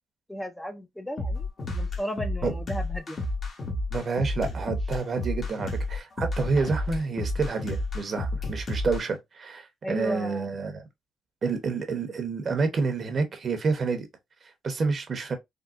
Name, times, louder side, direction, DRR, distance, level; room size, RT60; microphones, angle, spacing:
voice 1, 0.3-1.5 1.7-3.2 9.8-10.4, equal, 10° left, 0.5 m, -35 dB
sound 1, 1.2-9.0, left 2 dB, 45° left, 1.0 m, -31 dB
voice 2, 3.9-10.8 11.4-14.1 14.6-15.3, right 4 dB, 45° right, 0.9 m, -28 dB
3.6 x 2.2 x 2.5 m
cardioid pair, 90°, 0 cm